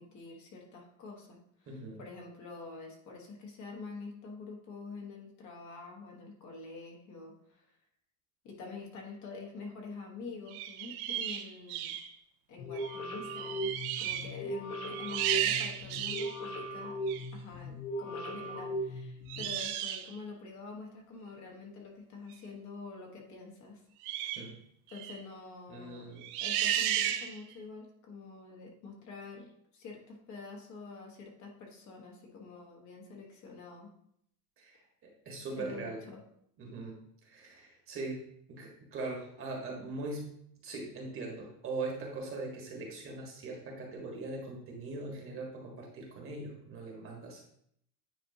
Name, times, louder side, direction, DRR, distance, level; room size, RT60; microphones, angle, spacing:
voice 1, 0.0-7.7 8.4-11.9 12.5-13.7 14.0-17.0 17.3-23.8 24.9-33.9 35.6-36.2, left 4 dB, 40° left, 0 dB, 1.3 m, -47 dB
voice 2, 1.7-2.0 24.2-24.6 25.7-26.3 34.6-36.0 36.6-37.0 37.2-38.2 38.5-40.2 40.6-47.4, right 3 dB, 30° right, -1 dB, 1.4 m, -41 dB
sound 1, 10.5-12.1 12.8-13.0 13.2-14.3 14.7-16.4 17.1-17.3 19.3-20.1 24.0-24.5 24.9-25.2 26.2-27.5, right 11 dB, 70° right, 0.8 m, -34 dB
sound 2, 12.6-19.5, equal, 85° left, 1.7 m, -38 dB
9.4 x 4.3 x 2.8 m, 0.71 s
cardioid pair, 160°, 45 cm